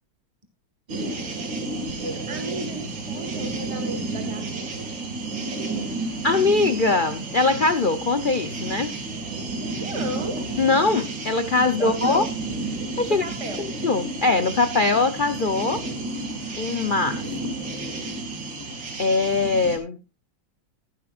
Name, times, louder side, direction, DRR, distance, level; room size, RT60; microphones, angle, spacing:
voice 1, 0.9-1.3 2.0-4.9 9.8-10.4 11.6-12.3 13.1-13.7, right 1 dB, 20° right, 1.4 m, -35 dB
sound 1, 0.9-19.8, right 2 dB, 70° right, 3.1 m, -31 dB
voice 2, 6.2-9.0 10.6-12.3 13.0-13.2 13.6-15.8 16.6-17.4 19.0-20.0, left 3 dB, 90° left, 0.4 m, -22 dB
15.5 x 12.0 x 2.5 m
omnidirectional pair, 2.1 m